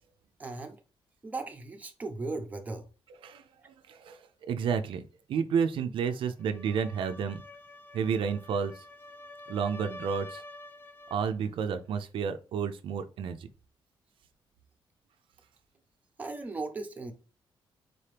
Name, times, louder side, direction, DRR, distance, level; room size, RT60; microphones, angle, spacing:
voice 1, 0.4-0.8 1.2-2.9 16.2-17.1, right 3 dB, 15° right, 0.6 m, -37 dB
voice 2, 3.1-5.0 5.3-7.4 7.9-8.8 9.5-10.4 11.1-13.5, right 6 dB, 70° right, 0.4 m, -31 dB
sound 1, 6.4-11.3, left 2 dB, 25° left, 0.3 m, -47 dB
4.0 x 2.8 x 3.3 m
wide cardioid pair, 160°, 9 cm